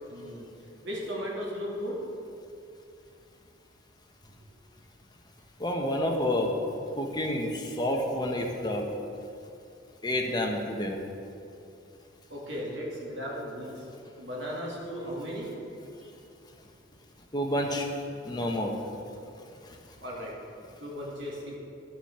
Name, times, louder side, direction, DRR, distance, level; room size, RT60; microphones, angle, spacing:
voice 1, 0.1-0.5 0.8-2.0 12.3-13.8 14.2-15.5 16.0-16.1 20.0-20.3 20.8-21.6, equal, 70° right, -3 dB, 2.5 m, -36 dB
voice 2, 5.6-6.6 7.0-8.9 10.0-11.0 17.3-17.9 18.2-18.8, left 1 dB, 20° left, 1 dB, 1.1 m, -29 dB
11.5 x 6.1 x 6.8 m, 2.6 s
head